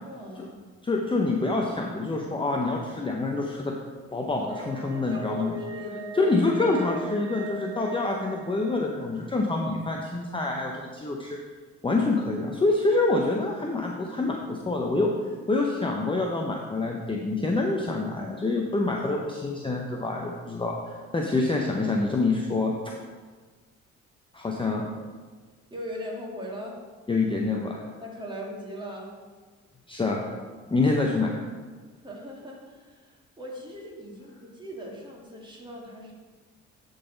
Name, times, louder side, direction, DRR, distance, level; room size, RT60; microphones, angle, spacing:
voice 1, 0.0-0.6 5.1-6.4 25.7-26.8 28.0-29.1 31.9-36.1, equal, 15° right, -2 dB, 1.9 m, -40 dB
voice 2, 0.8-3.7 4.1-5.5 6.1-11.4 11.8-15.1 15.5-22.9 24.3-24.9 27.1-27.8 29.9-30.2 30.7-31.4, left 3 dB, 15° left, 0 dB, 0.7 m, -26 dB
sound 1, 4.5-9.1, right 2 dB, 55° right, 2.1 m, -39 dB
11.0 x 4.0 x 3.9 m, 1.4 s
cardioid pair, 90°, 30 cm